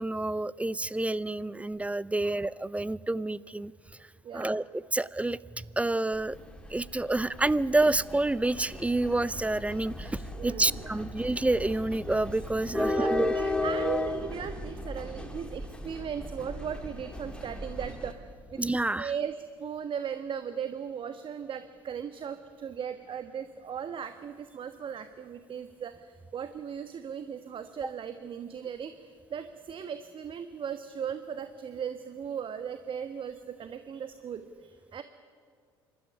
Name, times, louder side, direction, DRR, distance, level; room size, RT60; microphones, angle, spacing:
voice 1, 0.0-3.7 4.3-6.4 6.7-13.3 18.6-19.1, right 2 dB, 10° right, 20 dB, 0.6 m, -28 dB
voice 2, 4.2-4.6 10.3-10.9 12.7-18.6 19.0-35.0, right 7 dB, 45° right, 9 dB, 1.3 m, -38 dB
sound 1, 6.1-18.1, left 1 dB, 10° left, 3.0 m, -35 dB
27.0 x 13.0 x 9.9 m, 2.1 s
hypercardioid pair, 60°, 12 cm